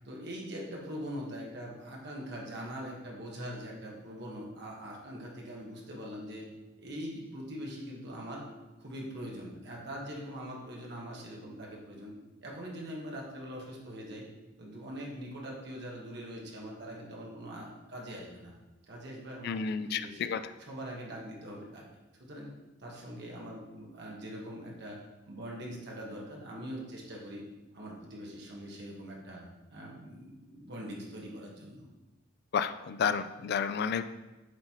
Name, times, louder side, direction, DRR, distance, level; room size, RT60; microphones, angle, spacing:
voice 1, 0.0-6.5 6.8-8.4 8.8-12.1 12.4-14.3 14.6-18.5 18.9-20.3 20.6-21.8 22.2-22.5 22.8-25.0 25.3-27.4 27.7-29.4 29.7-31.9, equal, 55° right, -2 dB, 1.3 m, -42 dB
voice 2, 19.4-20.4 32.5-34.0, left 6 dB, 55° left, 11 dB, 0.3 m, -31 dB
7.6 x 4.1 x 3.0 m, 1.1 s
head